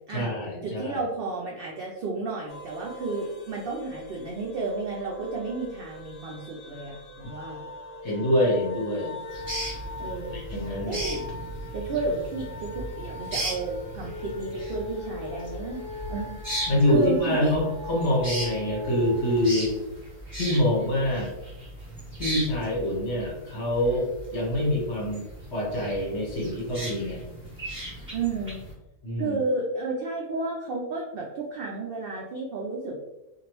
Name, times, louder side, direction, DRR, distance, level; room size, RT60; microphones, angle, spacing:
voice 1, 0.1-1.0 8.0-9.2 10.3-11.0 16.7-19.8 20.4-21.3 22.2-25.2 25.5-27.2 29.0-29.4, left 1 dB, 55° left, -4 dB, 1.3 m, -25 dB
voice 2, 0.6-7.7 10.0-10.4 10.9-11.2 11.7-15.8 16.1-16.4 16.9-17.5 28.1-28.6 29.2-33.0, right 3 dB, 85° right, -2 dB, 0.5 m, -32 dB
sound 1, 2.5-19.5, left 2 dB, 75° left, 0.5 m, -41 dB
sound 2, 9.3-28.7, right 1 dB, 10° right, 1.4 m, -37 dB
2.9 x 2.5 x 2.9 m, 0.97 s
omnidirectional pair, 1.5 m